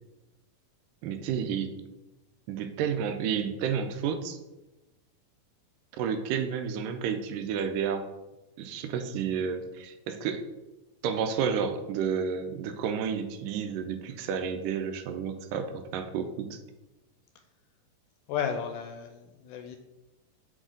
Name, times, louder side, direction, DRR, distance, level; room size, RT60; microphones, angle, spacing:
voice 1, 1.0-1.7 2.5-4.4 5.9-8.1 8.6-10.5 11.0-16.6, right 7 dB, 85° right, 8 dB, 2.2 m, -31 dB
voice 2, 18.3-19.8, left 7 dB, 80° left, 6 dB, 2.0 m, -33 dB
6.4 x 5.0 x 3.8 m, 1.0 s
omnidirectional pair, 3.9 m